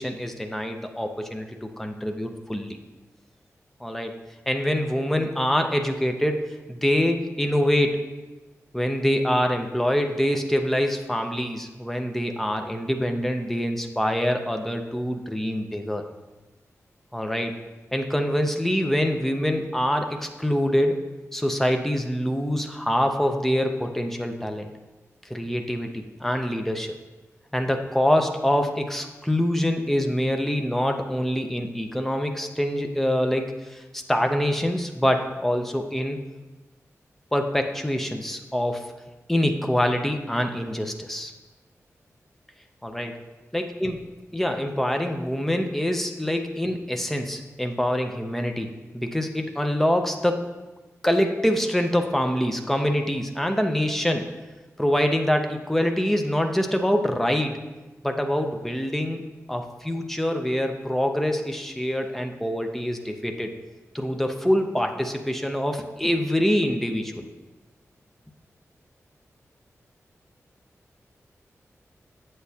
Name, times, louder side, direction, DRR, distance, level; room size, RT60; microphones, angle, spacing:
voice 1, 0.0-2.8 3.8-4.1 4.5-6.4 6.7-8.0 8.7-16.0 17.1-17.5 17.9-21.1 21.3-24.7 25.3-27.0 27.5-36.2 37.3-38.8 39.3-41.3 42.8-43.1 43.5-44.0 44.3-48.7 48.9-50.4 51.0-54.3 54.8-57.6 58.0-59.2 59.5-63.5 63.9-67.3, equal, 5° left, 4 dB, 0.5 m, -25 dB
8.1 x 7.5 x 2.8 m, 1.1 s
wide cardioid pair, 180°, 5 cm